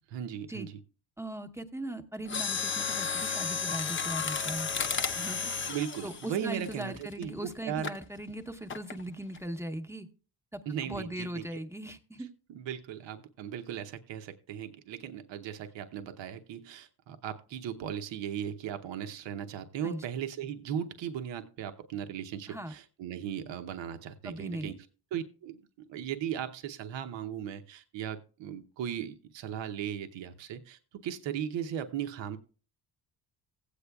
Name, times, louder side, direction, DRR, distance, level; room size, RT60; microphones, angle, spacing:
voice 1, 0.1-0.8 5.7-7.9 10.7-11.4 12.5-24.9 25.1-32.4, right 9 dB, 80° right, 8 dB, 0.9 m, -37 dB
voice 2, 1.2-4.7 5.0-5.5 6.0-10.1 10.8-12.3 19.8-20.0 22.5-22.7 24.2-24.7, right 1 dB, 5° right, 7 dB, 0.8 m, -39 dB
Mechanisms, 2.2-7.2 7.8-8.0 8.7-9.0 9.3-9.4, left 5 dB, 25° left, 0.7 m, -33 dB
16.0 x 8.3 x 2.3 m, 0.37 s
cardioid pair, 100°, 44 cm